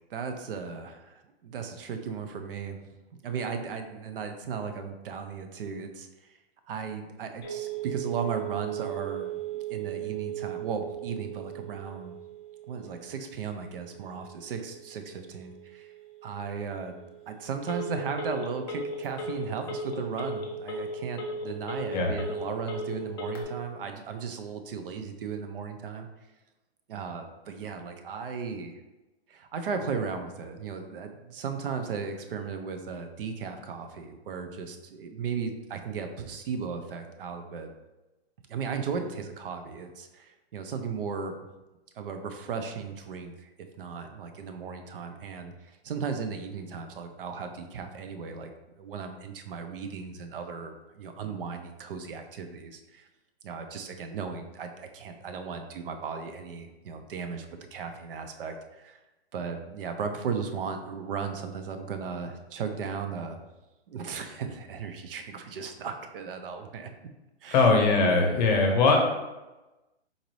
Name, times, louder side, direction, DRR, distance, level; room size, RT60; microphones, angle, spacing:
voice 1, 0.1-2.8 3.2-6.4 6.7-12.1 12.7-15.9 16.2-16.9 17.3-26.1 26.9-28.8 29.3-37.7 38.5-41.3 42.0-43.5 43.8-53.1 53.4-59.0 59.3-63.4 63.9-66.9 67.4-67.7 68.0-68.3, right 5 dB, 55° right, 6 dB, 0.5 m, -36 dB
Telephone, 7.4-23.4, right 4 dB, 25° left, 0.3 m, -37 dB
voice 2, 67.5-69.0, left 3 dB, 40° left, 2 dB, 0.7 m, -21 dB
4.0 x 2.5 x 3.1 m, 1.1 s
hypercardioid pair, 150°, 33 cm